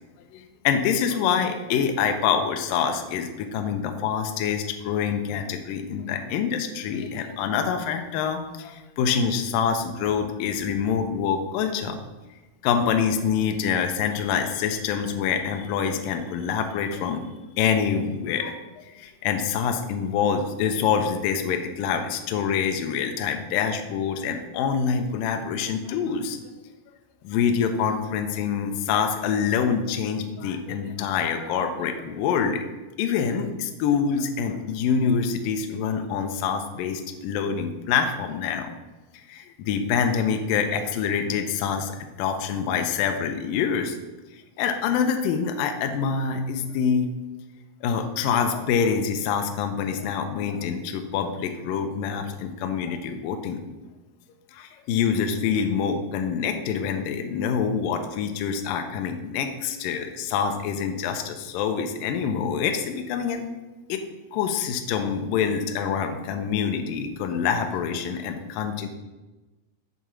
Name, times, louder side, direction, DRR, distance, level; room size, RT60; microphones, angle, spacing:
voice 1, 0.3-12.0 12.6-17.2 17.6-26.4 27.2-32.6 33.0-38.7 39.1-44.0 44.3-47.1 47.8-53.6 54.5-63.5 63.9-64.0 64.3-68.9, left 7 dB, 85° left, 5 dB, 2.0 m, -26 dB
7.0 x 3.7 x 6.1 m, 1.1 s
omnidirectional pair, 4.5 m